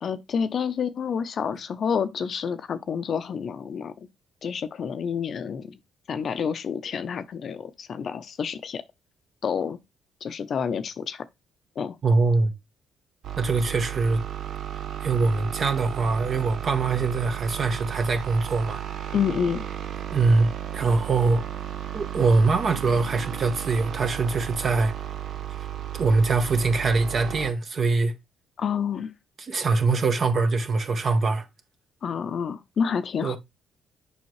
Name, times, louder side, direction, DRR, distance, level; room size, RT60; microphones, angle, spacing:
voice 1, 0.0-4.1 4.4-5.8 6.1-8.8 9.4-9.8 10.2-11.2 11.8-12.0 19.1-19.6 28.6-29.1 32.0-33.4, left 7 dB, 55° left, 0.6 m, -28 dB
voice 2, 12.0-12.5 13.4-14.2 15.0-18.8 20.1-21.4 21.9-24.9 26.0-28.1 29.4-31.5 33.2-33.4, right 3 dB, 50° right, 1.3 m, -23 dB
sound 1, 13.2-27.5, right 10 dB, 65° right, 0.6 m, -34 dB
7.0 x 5.5 x 3.2 m
cardioid pair, 90°, 0 cm